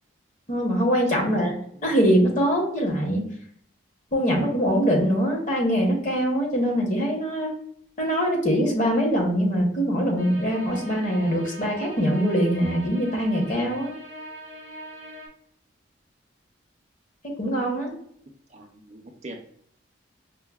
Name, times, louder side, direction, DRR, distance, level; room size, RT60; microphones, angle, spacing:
voice 1, 0.5-1.5 1.8-3.2 4.1-7.5 8.0-13.9 17.4-17.9, equal, 40° left, 0 dB, 0.9 m, -23 dB
voice 2, 1.1-1.8 18.5-19.4, right 2 dB, 35° right, 3 dB, 0.4 m, -41 dB
sound 1, 10.2-15.3, equal, 60° left, 1.4 m, -41 dB
5.3 x 2.0 x 2.3 m, 0.66 s
head